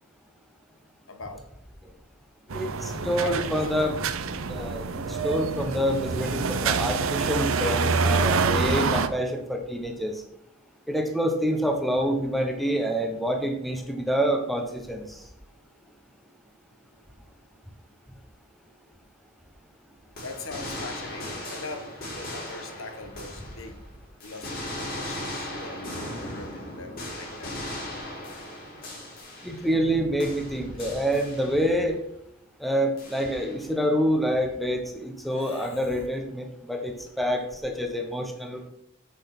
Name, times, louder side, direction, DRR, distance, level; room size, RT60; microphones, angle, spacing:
voice 1, 1.1-1.4 3.1-3.9 20.2-23.8 24.2-27.5 35.3-35.8, left 2 dB, 70° left, 6 dB, 1.5 m, -41 dB
voice 2, 2.5-4.0 4.5-10.2 10.9-15.2 29.4-32.0 32.6-38.7, equal, ahead, 3 dB, 1.1 m, -27 dB
sound 1, 2.5-9.1, right 4 dB, 80° right, 0.8 m, -26 dB
sound 2, 20.2-23.9 24.2-29.9 30.2-31.8 33.0-33.7, left 1 dB, 45° left, 4.3 m, -38 dB
8.9 x 6.3 x 6.1 m, 0.75 s
head